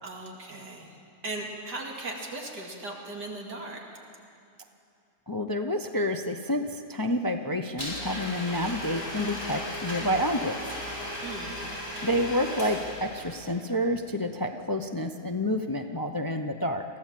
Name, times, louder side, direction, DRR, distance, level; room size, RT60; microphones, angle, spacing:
voice 1, 0.0-1.0 1.2-3.8 11.2-11.6, right 2 dB, 85° right, 0 dB, 3.0 m, -38 dB
voice 2, 5.3-10.6 12.0-16.8, left 1 dB, 35° left, 6 dB, 0.3 m, -29 dB
Domestic sounds home sounds, 7.8-13.4, left 1 dB, 15° right, 5.9 m, -36 dB
23.5 x 15.5 x 7.6 m, 2.6 s
omnidirectional pair, 1.7 m